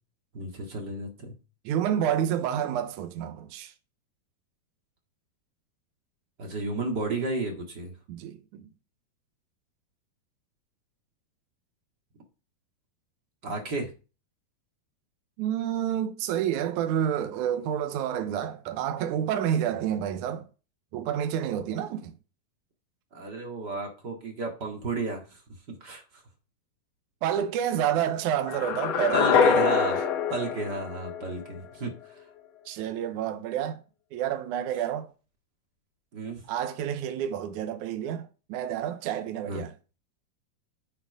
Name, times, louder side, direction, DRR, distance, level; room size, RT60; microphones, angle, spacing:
voice 1, 0.3-1.3 6.4-7.9 13.4-13.9 23.1-25.4 25.7-26.2 29.1-30.0 30.3-32.2 36.1-36.4 39.5-39.6, right 2 dB, 35° right, 1.8 m, -33 dB
voice 2, 1.6-3.7 8.1-8.7 15.4-20.5 20.9-22.1 27.2-29.2 32.7-33.8 34.1-35.1 36.5-39.7, right 9 dB, 75° right, 1.8 m, -29 dB
sound 1, 28.5-31.6, left 6 dB, 65° left, 1.6 m, -24 dB
9.7 x 6.8 x 4.9 m
omnidirectional pair, 4.6 m